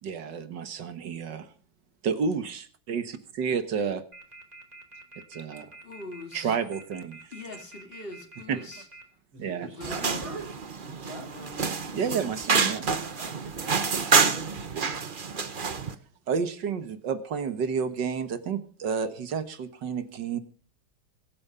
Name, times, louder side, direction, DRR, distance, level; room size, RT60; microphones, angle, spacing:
voice 1, 0.0-1.5 2.0-4.0 5.3-5.7 6.3-7.2 8.5-8.6 9.4-9.7 11.9-12.9 14.7-14.9 16.3-20.4, right 6 dB, 60° right, 11 dB, 1.9 m, -30 dB
sound 1, 4.1-9.0, right 2 dB, 20° right, 2.7 m, -47 dB
voice 2, 5.8-6.6 7.3-8.8 9.7-10.4 11.0-11.6, left 2 dB, 25° left, 6 dB, 2.4 m, -42 dB
voice 3, 9.3-10.5 10.8-11.3 13.2-13.8 14.3-15.0, right 3 dB, 80° right, 2 dB, 5.9 m, -44 dB
sound 2, 9.8-15.9, right 5 dB, 35° right, 0.9 m, -27 dB
22.5 x 8.7 x 5.6 m, 0.42 s
omnidirectional pair, 2.2 m